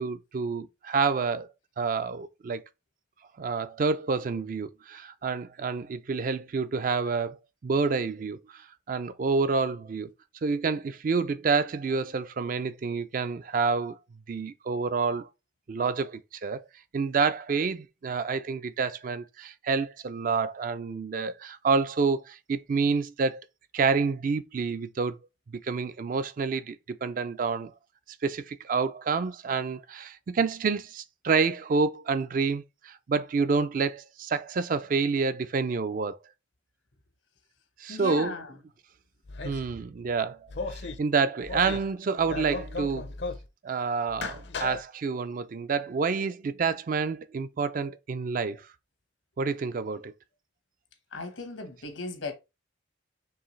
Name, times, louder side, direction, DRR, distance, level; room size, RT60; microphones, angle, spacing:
voice 1, 0.0-1.5 1.8-2.6 3.4-10.1 10.4-14.0 14.3-15.3 15.7-16.6 16.9-23.5 23.7-25.2 25.6-27.7 28.2-36.2 37.8-38.4 39.4-40.4 40.7-43.1 43.6-48.7 49.4-50.1, right 4 dB, 45° right, 0.3 m, -28 dB
voice 2, 37.9-38.6 51.1-52.3, left 3 dB, 85° left, 1.2 m, -37 dB
sound 1, 39.3-39.7 40.5-41.0 41.4-41.9 42.2-43.5 44.1-44.8, left 3 dB, 60° left, 0.5 m, -36 dB
4.6 x 3.2 x 3.1 m
head